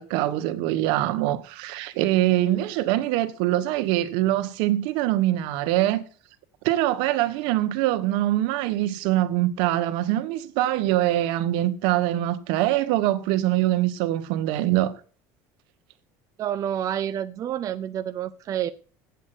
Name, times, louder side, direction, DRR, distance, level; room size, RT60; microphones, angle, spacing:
voice 1, 0.0-6.0 6.6-14.9, right 14 dB, 75° right, 1.2 m, -23 dB
voice 2, 16.4-18.7, right 10 dB, 45° right, 0.6 m, -28 dB
8.8 x 8.3 x 8.0 m
supercardioid pair, 110°, 8 cm